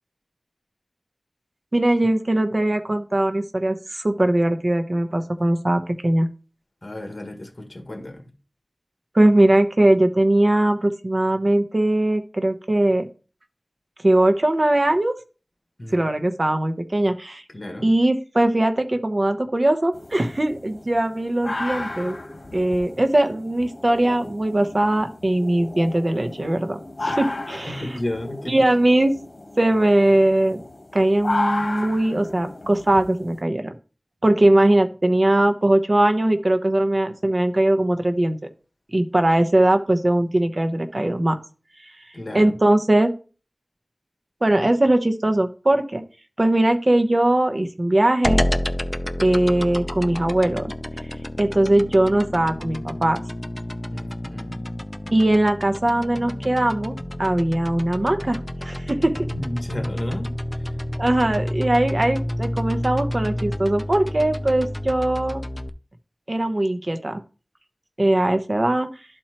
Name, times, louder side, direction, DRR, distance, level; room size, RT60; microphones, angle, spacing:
voice 1, 1.7-6.3 9.1-13.1 14.0-15.1 15.9-17.4 17.8-22.2 22.5-27.9 28.5-29.1 29.6-30.6 30.9-33.7 34.2-38.4 38.9-41.4 41.8-41.9 42.3-43.1 44.4-46.0 46.4-48.4 49.2-50.7 51.4-53.2 55.1-59.3 61.0-65.4 66.3-67.2 68.0-68.9, right 1 dB, 50° right, 0.9 m, -20 dB
voice 2, 6.8-8.3 15.8-16.1 17.5-17.9 27.7-28.6 42.1-42.5 53.9-54.6 59.3-60.3, left 1 dB, 50° left, 1.7 m, -32 dB
sound 1, 19.9-33.4, left 2 dB, 80° left, 1.1 m, -33 dB
sound 2, 48.2-65.7, left 1 dB, 20° left, 0.6 m, -29 dB
12.5 x 4.4 x 2.9 m
wide cardioid pair, 55°, 0 cm